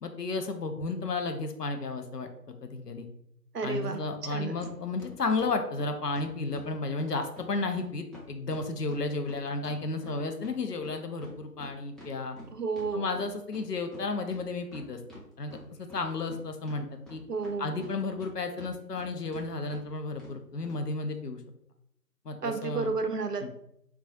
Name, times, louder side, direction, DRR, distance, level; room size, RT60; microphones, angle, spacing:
voice 1, 0.0-3.1 3.6-12.4 12.9-17.2 17.6-21.4 22.2-22.9 23.4-23.5, left 3 dB, 70° left, 6 dB, 0.5 m, -33 dB
voice 2, 3.5-4.0 4.3-4.6 12.5-13.1 17.3-17.7 22.4-23.5, right 4 dB, 70° right, 7 dB, 0.5 m, -31 dB
sound 1, 4.6-4.7 5.0-6.7 7.0-7.1 7.4-7.5 7.7-7.8 8.1-10.6 10.8-13.6 13.9-14.0 14.3-15.2 15.5-16.4 16.7-18.3 18.6-19.1 19.3-19.4 19.7-19.8 20.2-20.3 20.6-20.8, left 1 dB, ahead, 0.6 m, -48 dB
2.3 x 2.3 x 3.8 m, 0.75 s
figure-of-eight pair, 180°, 49 cm